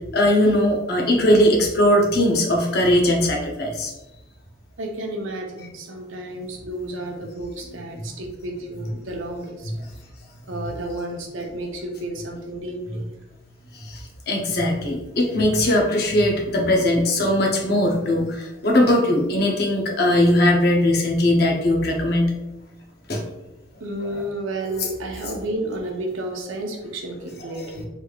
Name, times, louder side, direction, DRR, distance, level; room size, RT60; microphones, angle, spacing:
voice 1, 0.1-3.9 9.7-9.8 13.7-22.3 23.1-23.2 27.6-27.7, left 1 dB, 50° left, 0 dB, 0.6 m, -20 dB
voice 2, 4.8-9.7 10.5-13.0 16.6-16.7 23.8-27.9, right 1 dB, 80° right, 2 dB, 0.6 m, -31 dB
3.3 x 3.2 x 2.3 m, 1.0 s
head